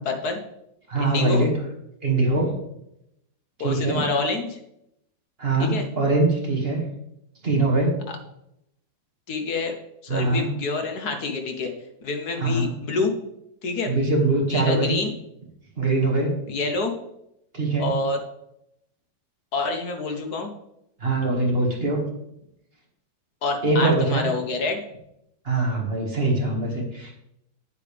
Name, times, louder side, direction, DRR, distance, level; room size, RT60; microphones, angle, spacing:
voice 1, 0.0-0.4 1.0-1.5 3.6-4.6 5.6-5.9 8.1-8.2 9.3-9.8 10.0-11.7 12.0-13.1 13.6-13.9 14.5-15.1 16.5-16.9 17.8-18.2 19.5-20.5 23.4-24.8, left 3 dB, 60° left, 5 dB, 1.4 m, -27 dB
voice 2, 0.9-1.5 2.0-2.6 3.6-4.0 5.4-6.8 7.4-7.9 10.1-10.5 12.4-12.7 13.9-14.9 15.8-16.3 17.5-17.9 21.0-22.0 23.6-24.3 25.5-27.1, right 2 dB, 30° right, -1 dB, 2.0 m, -22 dB
8.9 x 8.4 x 3.4 m, 0.81 s
omnidirectional pair, 2.0 m